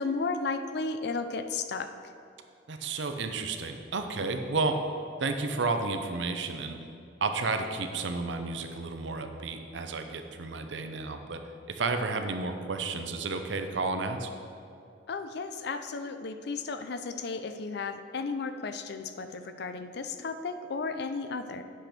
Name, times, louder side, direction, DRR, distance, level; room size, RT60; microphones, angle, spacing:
voice 1, 0.0-1.9 15.1-21.6, left 4 dB, 60° left, 9 dB, 0.5 m, -34 dB
voice 2, 2.7-4.8 5.2-6.8 7.2-11.4 11.7-14.3, right 3 dB, 75° right, 6 dB, 0.7 m, -32 dB
8.4 x 5.2 x 6.0 m, 2.6 s
head